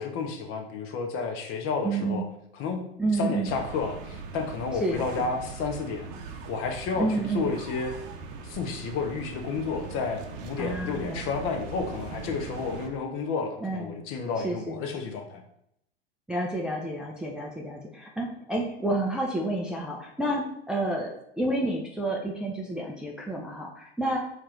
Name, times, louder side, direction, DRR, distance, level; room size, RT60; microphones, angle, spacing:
voice 1, 0.0-2.2 2.6-2.9 3.1-6.1 6.5-7.1 7.3-7.9 8.4-15.4, left 5 dB, 40° left, 5 dB, 0.8 m, -31 dB
voice 2, 1.8-2.2 3.0-3.5 4.8-5.1 7.0-7.5 10.6-11.2 13.6-14.0 14.4-14.8 16.3-24.2, right 2 dB, 5° right, -2 dB, 0.4 m, -30 dB
sound 1, 3.4-12.9, right 4 dB, 45° right, 0.8 m, -40 dB
4.6 x 2.5 x 4.4 m, 0.77 s
hypercardioid pair, 95°, 32 cm